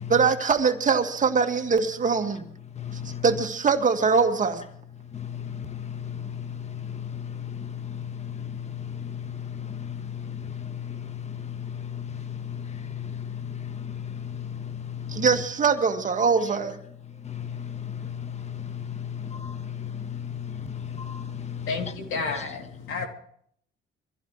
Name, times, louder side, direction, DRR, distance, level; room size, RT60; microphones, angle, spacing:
voice 1, 0.1-2.5 3.2-4.7 15.1-16.8, right 5 dB, 40° right, 1.9 m, -22 dB
voice 2, 2.8-3.2 5.1-15.2 17.2-21.7 22.3-22.4, left 8 dB, 35° left, 1.3 m, -35 dB
voice 3, 21.6-23.1, left 4 dB, 80° left, 3.0 m, -31 dB
24.0 x 16.0 x 3.2 m
cardioid pair, 90°, 20 cm